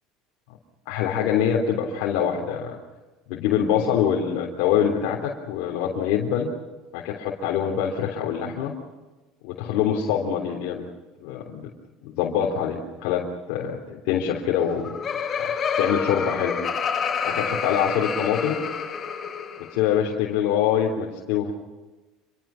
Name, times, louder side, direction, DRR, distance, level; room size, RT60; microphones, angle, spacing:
voice 1, 0.9-2.8 3.3-6.5 6.9-8.7 9.4-10.9 11.2-11.7 12.0-14.9 15.4-15.5 15.8-16.6 17.2-18.6 19.6-21.5, left 8 dB, 75° left, -2 dB, 3.6 m, -24 dB
Laughter, 14.5-19.8, left 6 dB, 35° left, 6.3 m, -28 dB
27.0 x 23.0 x 5.9 m, 1.2 s
supercardioid pair, 100°, 0 cm